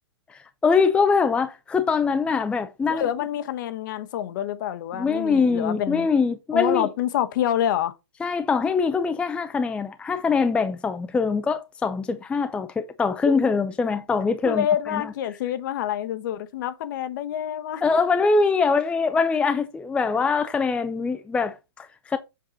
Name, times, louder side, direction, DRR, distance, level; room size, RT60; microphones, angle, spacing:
voice 1, 0.3-3.1 4.9-6.9 8.2-14.7 14.9-15.1 17.8-22.2, left 4 dB, 10° left, 0.5 m, -23 dB
voice 2, 2.9-6.1 6.5-8.0 13.2-13.4 14.4-17.8, left 10 dB, 50° left, 1.0 m, -27 dB
7.6 x 4.7 x 3.9 m
hypercardioid pair, 125°, 14 cm